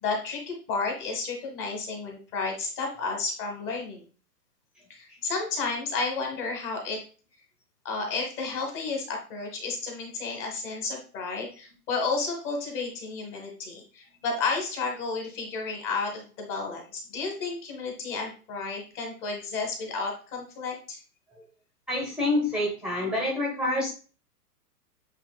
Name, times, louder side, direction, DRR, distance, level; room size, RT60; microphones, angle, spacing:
voice 1, 0.0-4.0 4.9-7.0 7.8-21.0, left 4 dB, 25° left, 2 dB, 1.3 m, -32 dB
voice 2, 4.7-5.2 21.3-21.4 21.9-23.9, left 1 dB, ahead, -3 dB, 0.9 m, -28 dB
8.0 x 2.9 x 2.3 m, 0.38 s
hypercardioid pair, 130°, 47 cm